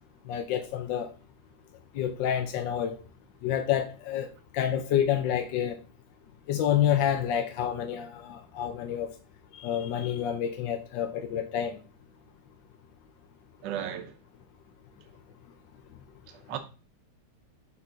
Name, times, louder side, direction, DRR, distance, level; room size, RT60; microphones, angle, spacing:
voice 1, 0.3-1.1 1.9-3.0 3.4-4.3 4.5-5.8 6.5-9.1 9.5-11.8, left 9 dB, 75° left, 1.4 m, -28 dB
voice 2, 13.6-14.1 16.3-16.6, right 10 dB, 70° right, 1.4 m, -35 dB
5.9 x 5.7 x 3.8 m
omnidirectional pair, 2.1 m